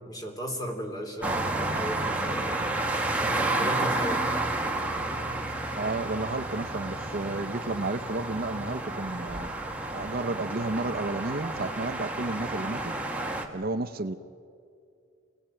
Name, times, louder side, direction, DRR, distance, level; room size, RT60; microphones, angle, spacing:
voice 1, 0.0-2.6 3.2-4.2, equal, 20° left, 2 dB, 3.1 m, -36 dB
sound 1, 1.2-13.5, right 2 dB, 5° right, 1.7 m, -31 dB
voice 2, 3.6-3.9 5.7-9.5 9.9-12.9 13.5-14.2, right 2 dB, 45° right, 9 dB, 0.7 m, -32 dB
28.5 x 19.0 x 9.0 m, 2.4 s
head